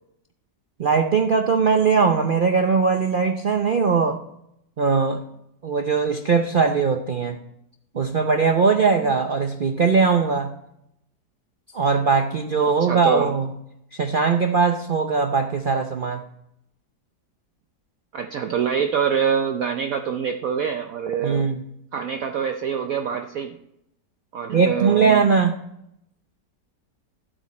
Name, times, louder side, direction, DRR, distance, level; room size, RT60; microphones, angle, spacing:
voice 1, 0.8-4.2 4.8-5.2 5.6-7.4 7.9-10.5 11.7-13.5 13.9-16.2 21.2-21.6 24.5-25.5, right 5 dB, 85° right, 4 dB, 0.4 m, -20 dB
voice 2, 12.8-13.3 18.1-21.5 21.9-23.6 24.3-25.2, right 7 dB, 60° right, 5 dB, 1.0 m, -25 dB
12.0 x 7.8 x 4.2 m, 0.77 s
omnidirectional pair, 1.9 m